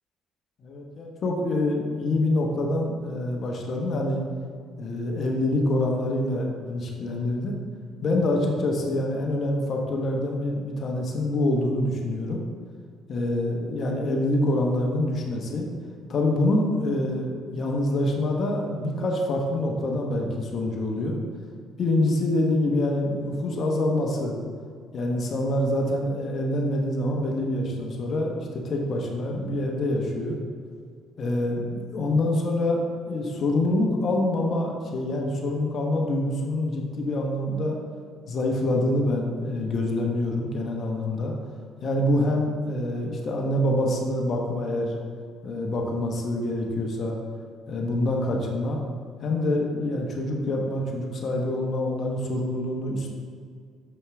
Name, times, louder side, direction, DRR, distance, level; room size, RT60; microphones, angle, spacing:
voice 1, 0.6-4.2 4.8-7.5 8.0-12.4 13.1-15.7 16.1-21.2 21.8-24.4 24.9-30.4 31.2-32.8 33.1-37.8 38.3-41.3 41.8-44.9 45.4-47.2 47.7-48.8 49.2-53.1, left 1 dB, 50° left, 1 dB, 1.2 m, -26 dB
7.1 x 5.4 x 3.6 m, 2.1 s
supercardioid pair, 80°, 0 cm